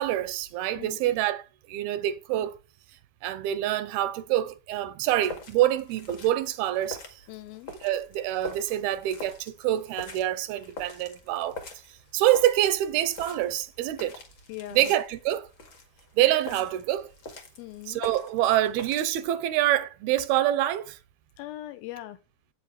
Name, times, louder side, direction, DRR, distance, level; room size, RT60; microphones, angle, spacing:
voice 1, 0.0-2.6 3.2-7.0 7.8-11.6 12.1-14.2 14.7-15.5 16.1-17.1 17.9-21.0, right 13 dB, 85° right, 2.7 m, -26 dB
voice 2, 0.8-1.1 7.3-7.7 14.5-14.9 17.6-18.0 21.4-22.2, left 15 dB, 80° left, 2.5 m, -40 dB
sound 1, 5.1-19.3, left 3 dB, 40° left, 1.9 m, -44 dB
8.4 x 8.0 x 4.7 m
omnidirectional pair, 4.5 m